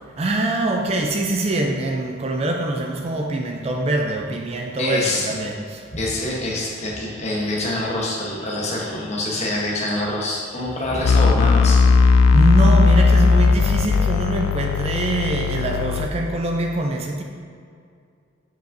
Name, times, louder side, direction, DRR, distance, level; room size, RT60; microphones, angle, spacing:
voice 1, 0.2-5.9 12.3-17.2, right 2 dB, 30° right, 2 dB, 0.4 m, -23 dB
voice 2, 4.8-5.3 5.9-11.8, left 1 dB, 35° left, -3 dB, 1.0 m, -25 dB
sound 1, 11.0-16.1, left 4 dB, 85° left, 0.3 m, -16 dB
7.4 x 5.2 x 2.6 m, 2.3 s
head